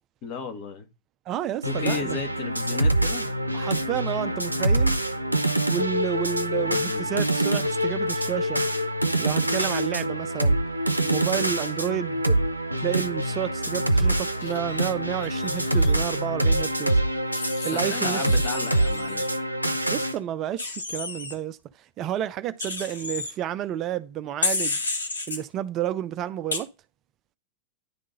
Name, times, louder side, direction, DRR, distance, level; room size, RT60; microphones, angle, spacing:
voice 1, 0.2-0.9 1.7-3.3 6.6-7.2 17.7-19.3, left 5 dB, 40° left, 1.7 m, -34 dB
voice 2, 1.3-2.2 3.5-5.0 5.7-8.6 9.2-10.6 11.0-12.4 12.8-17.0 17.6-18.2 19.9-24.8 25.3-26.7, right 11 dB, 35° right, 0.5 m, -30 dB
sound 1, 1.6-20.1, right 1 dB, 85° right, 0.6 m, -25 dB
Wild animals, 14.4-15.9 17.3-19.3 20.6-21.3 22.6-23.3 24.4-25.4 26.5-26.6, left 3 dB, 75° left, 1.5 m, -32 dB
10.5 x 3.7 x 3.9 m
figure-of-eight pair, 90°, 0 cm